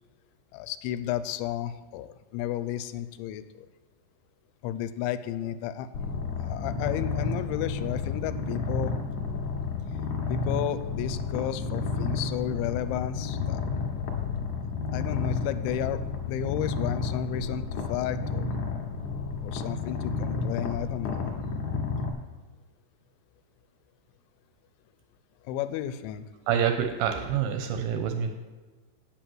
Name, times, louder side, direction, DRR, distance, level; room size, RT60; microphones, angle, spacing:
voice 1, 0.5-3.7 4.6-5.9 6.4-9.0 10.3-13.6 14.9-16.0 16.3-18.5 19.4-21.4 25.5-26.3, left 11 dB, 90° left, 12 dB, 2.9 m, -32 dB
Purr, 5.9-22.1, left 4 dB, 60° left, 2.1 m, -31 dB
voice 2, 26.5-28.3, right 8 dB, 85° right, 6 dB, 2.1 m, -27 dB
8.7 x 8.4 x 7.7 m, 1.3 s
omnidirectional pair, 5.2 m